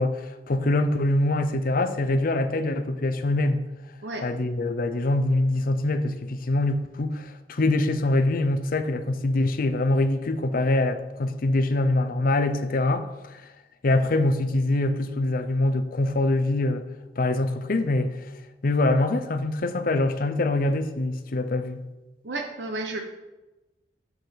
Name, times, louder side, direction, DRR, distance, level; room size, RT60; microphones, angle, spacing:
voice 1, 0.0-3.7 4.2-13.4 13.8-16.8 17.2-18.2 18.6-21.8, left 2 dB, 55° left, 9 dB, 0.6 m, -24 dB
voice 2, 22.2-23.0, right 2 dB, 80° right, 4 dB, 0.8 m, -32 dB
7.1 x 4.9 x 6.0 m, 1.1 s
head